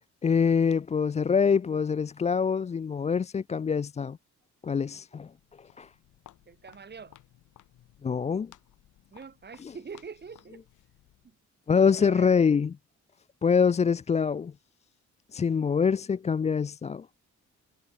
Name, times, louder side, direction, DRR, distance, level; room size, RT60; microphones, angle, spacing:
voice 1, 0.2-4.2 4.6-5.3 5.6-5.9 8.0-8.5 9.6-9.8 11.7-12.7 13.4-14.5 15.3-17.1, left 6 dB, 25° left, 0.4 m, -25 dB
Walk footsteps, 5.4-11.4, left 13 dB, 80° left, 4.7 m, -58 dB
voice 2, 6.5-7.2 9.1-10.6 11.2-11.3 11.9-12.3, right 5 dB, 35° right, 2.9 m, -44 dB
cardioid pair, 90°, 30 cm